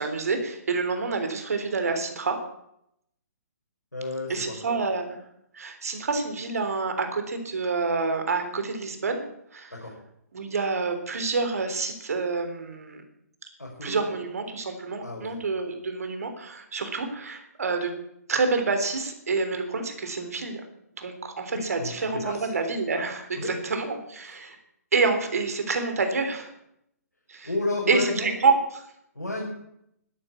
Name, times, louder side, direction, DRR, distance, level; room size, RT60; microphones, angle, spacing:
voice 1, 0.0-2.4 4.3-5.2 5.5-9.3 9.5-9.7 10.3-13.0 13.8-17.9 18.3-20.6 21.0-24.6 24.9-26.5 27.3-27.5 27.9-28.8, right 4 dB, 65° right, 6 dB, 3.6 m, -27 dB
voice 2, 3.9-4.6 9.7-9.9 13.6-14.1 15.0-15.2 21.5-22.5 23.4-23.6 27.4-28.4 29.1-29.5, left 2 dB, 85° left, -2 dB, 4.9 m, -31 dB
13.0 x 10.5 x 8.2 m, 0.77 s
figure-of-eight pair, 130°, 9 cm